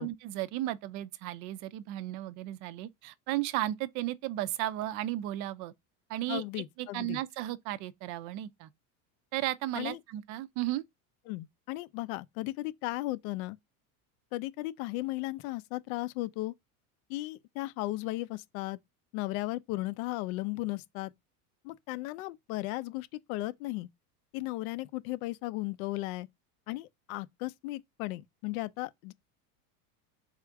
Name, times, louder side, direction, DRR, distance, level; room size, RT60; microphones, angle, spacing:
voice 1, 0.0-5.7 6.1-6.4 6.8-8.7 9.3-10.8, right 15 dB, 45° right, 0.4 m, -34 dB
voice 2, 6.3-7.2 9.7-10.0 11.3-13.6 14.3-16.5 17.1-18.8 19.1-21.1 21.6-23.9 24.3-26.3 26.7-29.1, left 19 dB, 70° left, 0.6 m, -36 dB
3.5 x 2.5 x 4.5 m
supercardioid pair, 125°, 44 cm